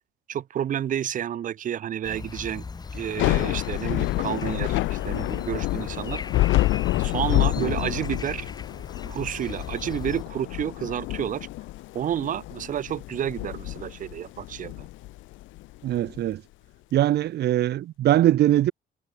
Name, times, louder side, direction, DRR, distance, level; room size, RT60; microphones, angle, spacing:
voice 1, 0.3-2.6 2.9-6.2 7.0-8.5 9.1-11.5 11.9-14.9, right 10 dB, 45° right, 1.0 m, -30 dB
sound 1, 2.0-10.2, left 4 dB, 20° left, 7.0 m, -40 dB
Thunder / Rain, 3.0-16.2, left 18 dB, 85° left, 0.7 m, -28 dB
voice 2, 15.8-16.4 16.9-18.7, right 13 dB, 60° right, 1.7 m, -21 dB
cardioid pair, 160°, 19 cm